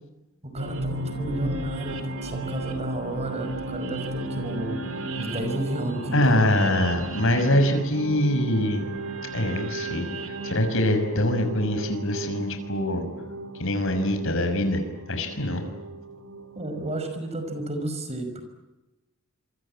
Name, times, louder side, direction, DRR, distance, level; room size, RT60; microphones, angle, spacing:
voice 1, 0.4-4.8 5.2-6.9 16.6-18.4, right 1 dB, 30° right, 7 dB, 5.7 m, -32 dB
sound 1, 0.6-17.7, right 2 dB, 65° right, 3.0 m, -34 dB
voice 2, 6.1-8.9 9.3-10.1 10.4-13.1 13.6-14.8 15.1-15.6, left 1 dB, 65° left, 6 dB, 6.1 m, -23 dB
27.0 x 24.0 x 8.8 m, 1.0 s
head